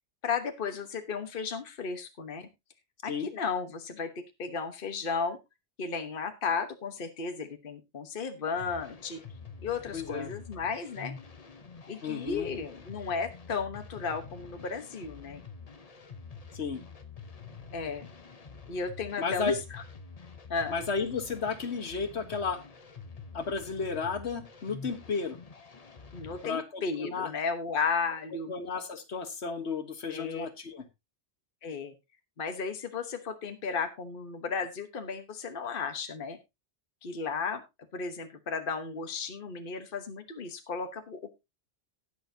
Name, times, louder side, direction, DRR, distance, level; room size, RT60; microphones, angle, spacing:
voice 1, 0.2-2.5 3.0-5.4 5.8-9.2 9.6-11.1 11.9-15.4 17.7-18.1 18.7-19.8 20.5-20.7 26.1-28.5 30.1-30.5 31.6-31.9 32.4-36.4 37.0-37.6 37.9-41.2, left 5 dB, 50° left, 7 dB, 1.3 m, -34 dB
sound 1, 8.5-26.5, left 5 dB, 35° left, 0.9 m, -47 dB
voice 2, 9.9-10.3 12.0-12.5 16.5-16.8 19.2-19.6 20.7-22.6 23.3-25.4 26.4-27.3 28.5-30.8, left 5 dB, 70° left, 8 dB, 1.6 m, -33 dB
18.5 x 6.9 x 2.7 m, 0.23 s
omnidirectional pair, 1.2 m